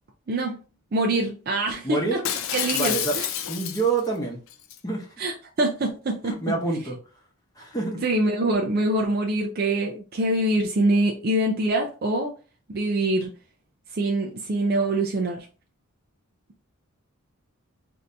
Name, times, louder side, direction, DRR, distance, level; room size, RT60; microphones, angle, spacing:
voice 1, 0.3-0.6 0.9-2.2 2.5-3.3 5.2-6.4 8.0-12.3 12.7-13.3 13.9-15.5, right 1 dB, 45° right, 0 dB, 0.4 m, -24 dB
voice 2, 1.8-2.3 2.7-3.2 3.5-4.4 4.8-5.1 6.2-7.0 7.6-8.0, right 3 dB, 15° left, 0 dB, 0.8 m, -27 dB
Shatter, 2.2-4.1 4.5-4.8, left 9 dB, 65° left, 0.4 m, -28 dB
2.7 x 2.6 x 3.3 m, 0.35 s
head